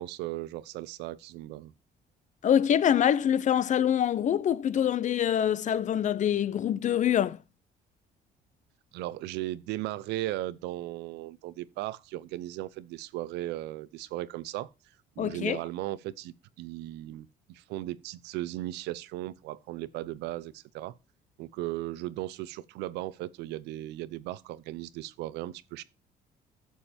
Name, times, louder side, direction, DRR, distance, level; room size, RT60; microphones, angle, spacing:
voice 1, 0.0-1.7 8.9-14.7 15.2-20.9 21.4-25.8, right 15 dB, 85° right, 0.7 m, -37 dB
voice 2, 2.4-7.4 15.2-15.6, left 9 dB, 45° left, 0.6 m, -25 dB
11.5 x 7.3 x 4.3 m
cardioid pair, 110°, 17 cm